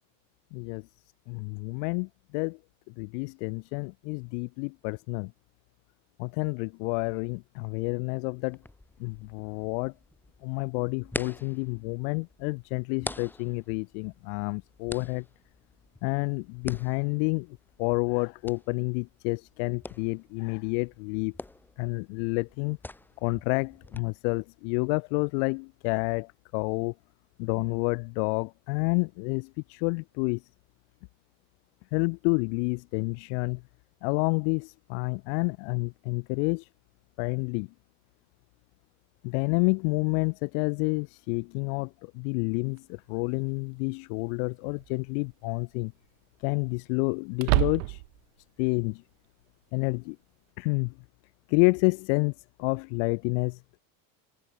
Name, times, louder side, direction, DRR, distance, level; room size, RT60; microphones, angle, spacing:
voice 1, 0.5-0.9 1.3-2.6 3.0-5.3 6.2-8.6 9.0-9.9 10.4-15.2 16.0-21.3 21.8-22.8 23.2-26.9 27.4-30.4 31.9-33.6 34.0-36.7 37.2-37.7 39.2-45.9 46.4-48.0 48.6-49.0 49.7-50.2 50.6-50.9 51.5-52.3 52.6-53.6, left 40 dB or more, 75° left, 2.8 m, -29 dB
sound 1, 8.5-24.0, left 2 dB, 5° left, 6.7 m, -45 dB
sound 2, 42.8-42.9 44.7-45.1 45.5-45.6 47.3-48.2, right 31 dB, 90° right, 1.5 m, -27 dB
cardioid pair, 170°, 37 cm